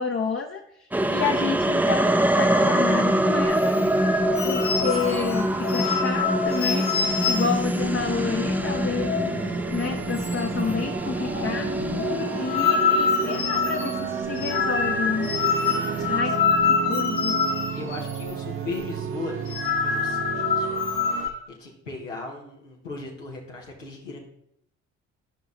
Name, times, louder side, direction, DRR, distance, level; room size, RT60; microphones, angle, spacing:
voice 1, 0.0-11.7 12.3-15.3 16.1-16.4 16.7-17.4, left 5 dB, 35° left, 3 dB, 0.8 m, -30 dB
sound 1, 0.9-16.2, right 1 dB, 5° right, 0.6 m, -26 dB
sound 2, 3.4-21.3, right 7 dB, 35° right, 0.7 m, -34 dB
sound 3, 3.5-9.5 9.7-9.9 10.2-10.7 11.0-18.3 18.6-18.8 19.3-21.3, left 6 dB, 60° left, 2.1 m, -26 dB
voice 2, 16.0-16.5 17.7-24.2, left 3 dB, 90° left, -2 dB, 1.5 m, -38 dB
12.5 x 5.8 x 4.0 m, 0.75 s
figure-of-eight pair, 45°, 37 cm